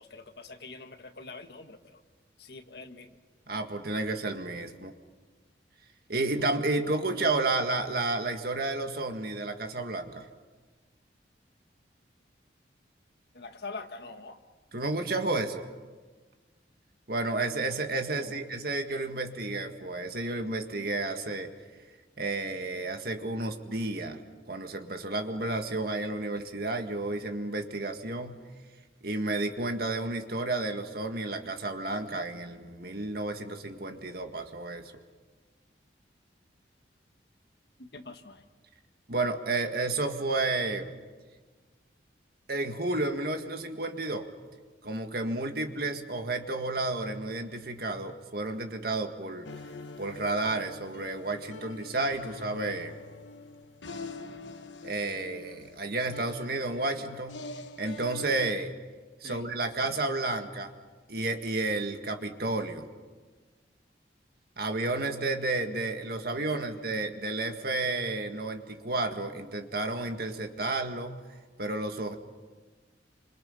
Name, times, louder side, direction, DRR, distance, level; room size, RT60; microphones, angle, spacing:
voice 1, 0.0-2.0 2.4-3.2 7.2-7.3 13.3-14.4 18.0-18.4 37.8-38.4 59.2-59.5 59.8-59.9 66.5-66.6, left 3 dB, 60° left, 6 dB, 1.7 m, -44 dB
voice 2, 3.5-4.9 6.1-10.3 14.7-15.7 17.1-21.5 22.2-24.2 24.5-28.4 29.0-34.9 39.1-40.9 42.5-44.3 44.8-49.5 50.0-53.0 54.8-57.4 57.8-58.7 59.2-60.7 61.1-62.9 64.6-71.2 71.6-72.1, right 2 dB, 55° right, 5 dB, 1.9 m, -31 dB
sound 1, 49.4-58.5, left 3 dB, 80° left, 1.2 m, -45 dB
28.5 x 26.0 x 5.7 m, 1.4 s
head